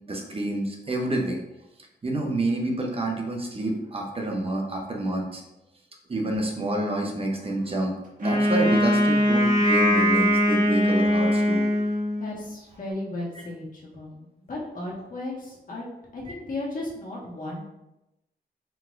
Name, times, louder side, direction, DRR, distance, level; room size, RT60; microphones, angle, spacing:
voice 1, 0.1-1.4 2.0-5.4 6.1-7.9 8.2-11.6, right 2 dB, 35° right, 1 dB, 0.8 m, -28 dB
Wind instrument woodwind instrument, 8.2-12.4, equal, 50° right, 1.4 m, -21 dB
voice 2, 12.2-15.9 16.1-17.6, left 2 dB, 50° left, -4 dB, 1.5 m, -35 dB
4.5 x 3.9 x 2.5 m, 0.91 s
cardioid pair, 95°, 18 cm